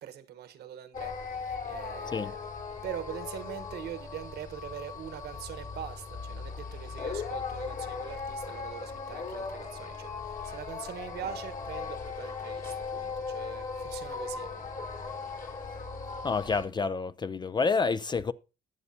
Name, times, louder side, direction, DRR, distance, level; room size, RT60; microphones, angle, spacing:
voice 1, 0.0-2.4 2.8-14.7, right 10 dB, 65° right, 1.2 m, -43 dB
sound 1, 0.9-16.7, left 5 dB, 50° left, 2.7 m, -38 dB
voice 2, 16.2-18.3, left 4 dB, 25° left, 0.4 m, -28 dB
20.5 x 6.9 x 2.8 m
supercardioid pair, 90°, 18 cm